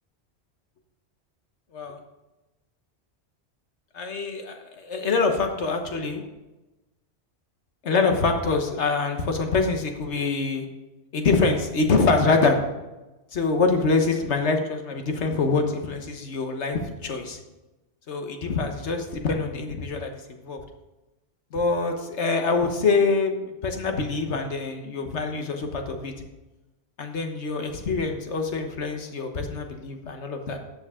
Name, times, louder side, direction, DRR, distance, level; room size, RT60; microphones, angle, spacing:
voice 1, 3.9-6.2 7.8-10.6 11.1-12.6 13.3-17.4 18.1-20.6 21.5-26.1 27.0-30.6, left 4 dB, 90° left, 4 dB, 1.5 m, -25 dB
13.5 x 7.9 x 3.7 m, 1.1 s
omnidirectional pair, 1.1 m